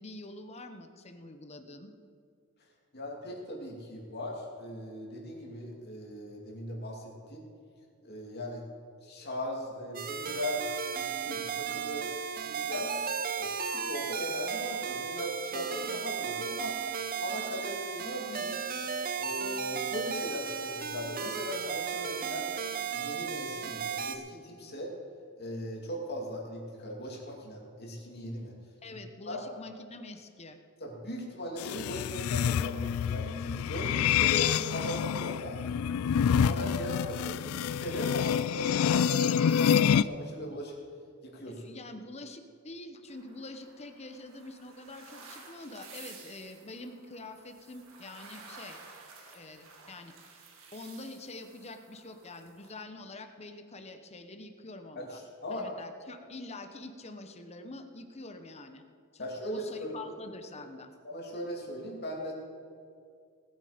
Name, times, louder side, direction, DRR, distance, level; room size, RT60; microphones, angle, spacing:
voice 1, 0.0-1.9 28.8-30.6 41.6-48.8 49.2-50.1 50.7-55.2 55.5-58.8 59.1-60.9, left 2 dB, 30° left, 7 dB, 1.0 m, -46 dB
voice 2, 2.9-7.5 8.0-8.6 9.0-10.6 11.0-12.1 12.4-12.9 13.4-16.9 17.2-18.6 19.2-22.5 22.9-24.9 25.4-28.5 28.9-29.0 29.2-29.5 30.8-35.6 36.2-40.7 41.2-41.6 54.9-55.7 59.2-60.1 61.0-62.3, equal, 50° left, -1 dB, 2.7 m, -39 dB
sound 1, 9.9-24.2, right 6 dB, 45° right, 0.7 m, -35 dB
sound 2, 31.6-40.0, left 8 dB, 80° left, 0.3 m, -27 dB
sound 3, 43.1-52.7, right 4 dB, 70° right, 1.9 m, -53 dB
18.5 x 8.7 x 5.1 m, 2.3 s
head